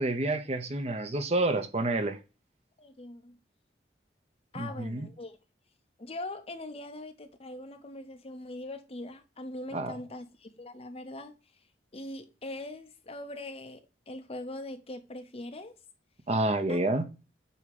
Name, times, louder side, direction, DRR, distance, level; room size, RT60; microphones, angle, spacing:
voice 1, 0.0-2.2 4.6-5.1 9.7-9.9 16.3-17.1, right 2 dB, 35° right, 0.7 m, -29 dB
voice 2, 2.8-3.4 4.5-5.4 6.0-11.3 11.9-15.8 16.7-16.8, left 1 dB, 35° left, 0.8 m, -42 dB
8.5 x 2.9 x 4.9 m
head